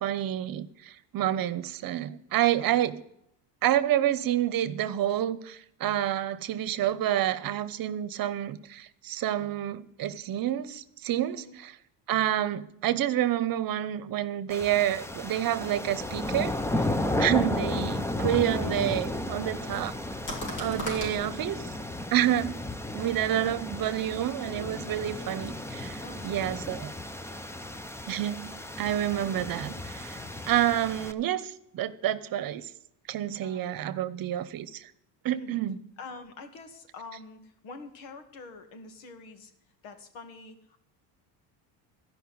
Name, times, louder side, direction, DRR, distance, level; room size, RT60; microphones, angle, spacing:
voice 1, 0.0-3.0 3.6-11.8 12.1-16.9 17.2-19.9 20.6-21.7 22.1-22.6 22.9-26.9 28.1-28.5 28.8-32.7 33.1-34.9 35.2-35.8, right 12 dB, 50° right, 0.9 m, -28 dB
sound 1, 14.5-31.1, left 1 dB, 5° left, 0.5 m, -34 dB
sound 2, 15.9-21.2, left 1 dB, 55° left, 4.9 m, -42 dB
voice 2, 26.0-26.6 33.4-33.7 35.3-35.6 36.0-39.5 39.8-40.8, left 3 dB, 85° left, 2.1 m, -46 dB
14.0 x 5.6 x 9.5 m
cardioid pair, 130°, 46 cm